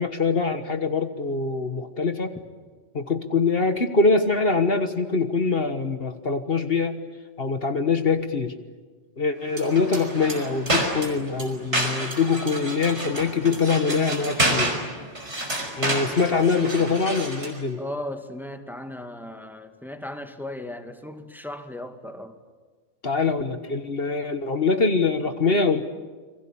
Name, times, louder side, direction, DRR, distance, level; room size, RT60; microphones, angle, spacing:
voice 1, 0.0-2.3 2.9-7.0 7.4-8.5 9.2-14.7 15.8-17.8 23.0-25.8, left 4 dB, 55° left, 8 dB, 1.6 m, -23 dB
sound 1, 9.5-17.6, right 1 dB, 70° right, 5.6 m, -29 dB
voice 2, 17.8-22.4, left 1 dB, ahead, 6 dB, 2.1 m, -36 dB
30.0 x 23.0 x 8.7 m, 1.4 s
omnidirectional pair, 1.2 m